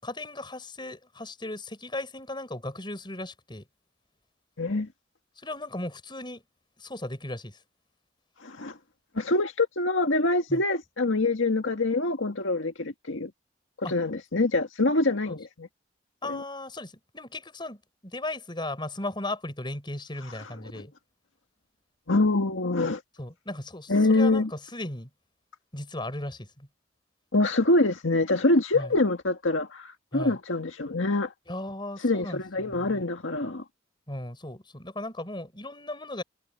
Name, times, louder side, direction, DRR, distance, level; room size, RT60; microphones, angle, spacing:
voice 1, 0.0-3.6 5.4-6.4 6.8-7.6 10.5-10.6 13.8-13.9 15.3-15.4 16.2-20.9 23.2-25.1 25.7-26.7 28.7-28.9 30.1-30.4 31.5-33.0 34.1-36.2, left 1 dB, 25° left, 6.6 m, -36 dB
voice 2, 4.6-4.9 8.4-8.8 9.1-13.3 13.8-15.7 16.3-16.4 20.7-20.8 22.1-23.0 23.9-24.5 27.3-31.3 32.0-33.6, left 2 dB, 85° left, 1.8 m, -25 dB
head